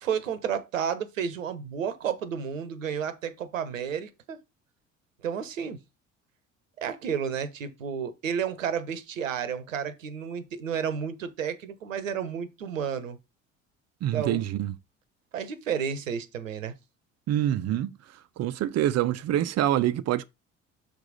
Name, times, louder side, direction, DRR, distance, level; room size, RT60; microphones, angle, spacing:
voice 1, 0.0-4.4 5.2-5.8 6.8-13.2 14.1-14.5 15.3-16.7, right 7 dB, 80° right, 1.0 m, -31 dB
voice 2, 14.0-14.8 17.3-17.9 18.4-20.2, right 12 dB, 40° right, 0.7 m, -26 dB
6.9 x 4.9 x 3.9 m
figure-of-eight pair, 55°, 38 cm